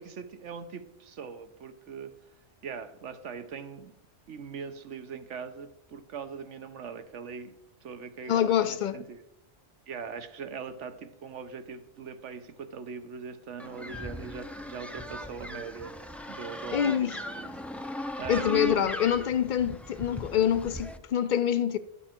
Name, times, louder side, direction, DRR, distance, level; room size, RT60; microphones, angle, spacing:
voice 1, 0.0-2.1 2.6-3.9 4.3-7.5 7.8-9.2 9.9-15.9 16.3-17.5 18.2-18.9, right 6 dB, 80° right, 1.2 m, -41 dB
voice 2, 8.3-9.0 16.7-17.2 18.3-21.8, left 9 dB, 60° left, 0.5 m, -26 dB
sound 1, 13.6-21.0, left 1 dB, ahead, 0.3 m, -38 dB
11.5 x 7.1 x 4.4 m
omnidirectional pair, 1.2 m